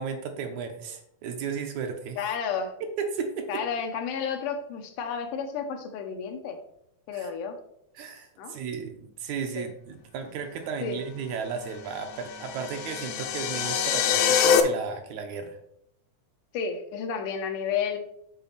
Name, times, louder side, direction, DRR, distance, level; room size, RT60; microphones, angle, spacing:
voice 1, 0.0-2.2 2.8-3.6 7.1-7.3 8.0-15.6, right 6 dB, 75° right, 5 dB, 2.0 m, -34 dB
voice 2, 2.2-2.8 3.5-6.6 7.1-7.6 8.4-8.5 9.6-9.7 10.8-11.0 16.5-18.0, left 6 dB, 90° left, 5 dB, 2.5 m, -31 dB
sound 1, 12.0-14.6, left 8 dB, 75° left, 1.6 m, -24 dB
8.3 x 4.0 x 5.6 m, 0.74 s
omnidirectional pair, 3.7 m